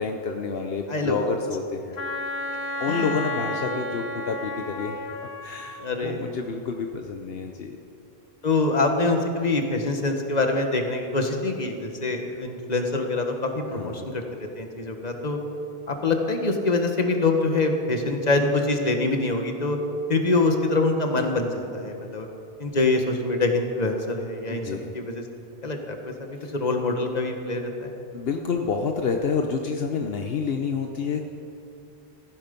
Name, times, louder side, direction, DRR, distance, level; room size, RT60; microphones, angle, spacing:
voice 1, 0.0-2.0 2.8-5.0 5.4-7.8 13.8-14.1 24.5-25.0 26.4-26.5 28.1-31.2, left 5 dB, 70° left, 4 dB, 1.1 m, -29 dB
Wind instrument woodwind instrument, 2.0-5.8, left 1 dB, 90° left, 1.4 m, -32 dB
voice 2, 2.9-3.2 3.7-3.8 5.8-6.3 8.4-14.2 14.6-15.4 15.9-19.8 20.1-22.3 22.6-24.7 24.9-25.2 25.6-27.9, left 3 dB, 40° left, 4 dB, 1.6 m, -25 dB
16.5 x 15.0 x 5.3 m, 2.6 s
omnidirectional pair, 1.0 m